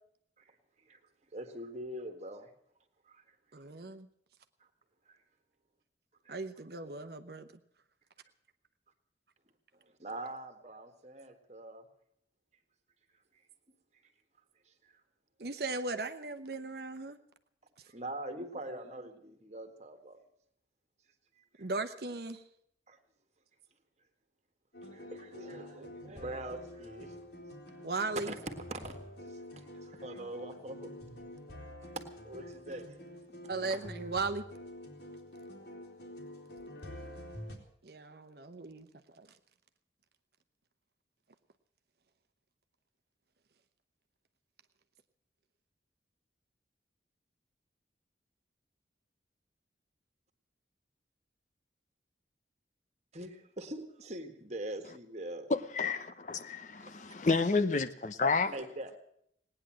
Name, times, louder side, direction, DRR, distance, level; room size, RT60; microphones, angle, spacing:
voice 1, 1.3-2.5 3.1-3.3 5.1-5.2 6.2-6.4 9.7-11.8 14.7-15.0 17.9-20.2 21.4-21.7 22.9-23.0 24.8-27.2 28.1-29.0 29.2-31.3 31.9-33.1 33.6-33.8 53.1-55.5 56.6-56.7 58.5-58.9, right 1 dB, 35° right, 1.7 m, -43 dB
voice 2, 3.5-4.1 6.3-7.5 15.4-17.2 21.6-22.4 27.8-28.3 33.5-34.4 37.8-38.9 39.2-39.3, right 3 dB, 55° right, 0.9 m, -37 dB
sound 1, 24.7-37.6, left 1 dB, 70° left, 3.1 m, -47 dB
voice 3, 55.5-58.5, left 4 dB, 40° left, 0.7 m, -30 dB
18.5 x 9.9 x 7.6 m
head